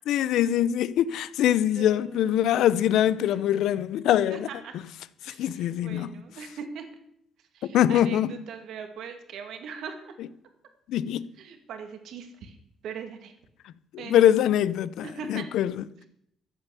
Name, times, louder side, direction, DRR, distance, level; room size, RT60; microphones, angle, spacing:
voice 1, 0.1-4.5 5.3-6.1 7.7-8.3 10.9-11.3 13.9-15.8, left 11 dB, 85° left, 0.7 m, -23 dB
voice 2, 1.7-2.5 3.2-3.4 4.3-4.8 5.2-6.9 7.5-10.1 11.4-12.6 12.8-13.3 14.0-14.3 15.0-15.5, right 6 dB, 80° right, 2.4 m, -40 dB
14.5 x 9.1 x 8.3 m
cardioid pair, 90°, 0 cm